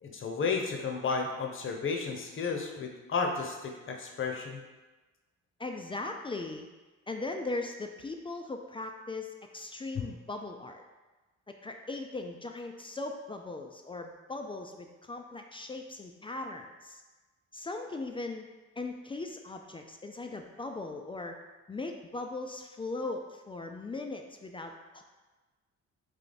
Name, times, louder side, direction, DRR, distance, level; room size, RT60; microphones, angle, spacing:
voice 1, 0.0-4.6 9.9-10.0, left 5 dB, 40° left, 2 dB, 0.7 m, -33 dB
voice 2, 5.6-6.7 7.1-10.8 11.5-17.0 17.5-18.5 18.8-21.4 21.7-25.0, left 2 dB, 20° left, 4 dB, 0.3 m, -39 dB
3.4 x 3.2 x 3.9 m, 1.2 s
cardioid pair, 90°, 30 cm